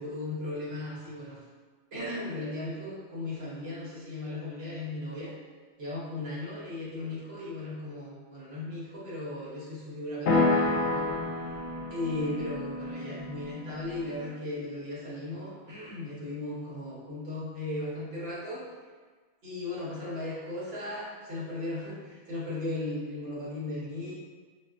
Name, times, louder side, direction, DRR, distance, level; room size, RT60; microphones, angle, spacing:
voice 1, 0.0-1.4 1.9-5.3 5.8-11.2 11.9-18.7 19.4-24.1, left 2 dB, 60° right, -8 dB, 1.2 m, -36 dB
sound 1, 10.3-14.4, left 2 dB, 75° left, 0.8 m, -29 dB
4.1 x 2.1 x 2.4 m, 1.4 s
omnidirectional pair, 1.2 m